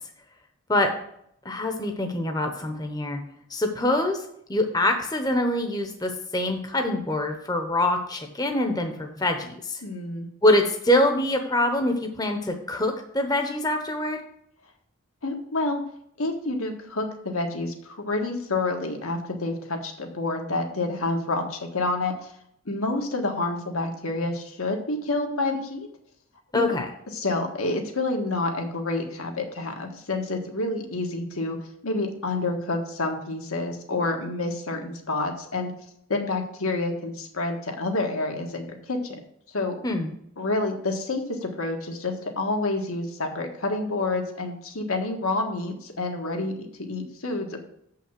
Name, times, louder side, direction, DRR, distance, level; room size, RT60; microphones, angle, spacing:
voice 1, 1.4-3.2 3.5-4.2 4.5-9.8 10.4-14.2 26.5-26.9 39.8-40.1, left 1 dB, 20° left, 4 dB, 0.9 m, -24 dB
voice 2, 9.8-10.3 15.2-15.8 16.2-22.3 22.6-25.9 26.5-26.6 27.1-31.6 31.8-35.7 36.1-39.2 39.5-39.8 40.4-47.7, left 2 dB, 80° left, 3 dB, 1.7 m, -28 dB
7.3 x 5.7 x 7.5 m, 0.71 s
head